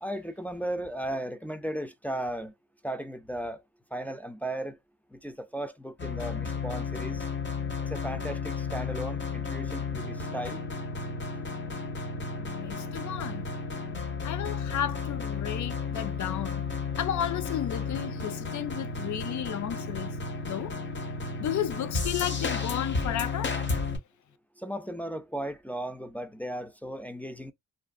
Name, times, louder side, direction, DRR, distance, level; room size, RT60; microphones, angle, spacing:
voice 1, 0.0-2.5 2.8-3.6 3.9-4.8 5.1-7.2 7.9-10.6 24.6-27.5, right 1 dB, 5° left, 0.3 m, -36 dB
sound 1, 6.0-24.0, left 4 dB, 35° left, 0.8 m, -33 dB
voice 2, 12.4-13.5 14.2-16.6 17.0-20.2 20.4-20.7 21.4-23.5, left 10 dB, 65° left, 0.5 m, -33 dB
2.5 x 2.4 x 2.2 m
cardioid pair, 80°, 32 cm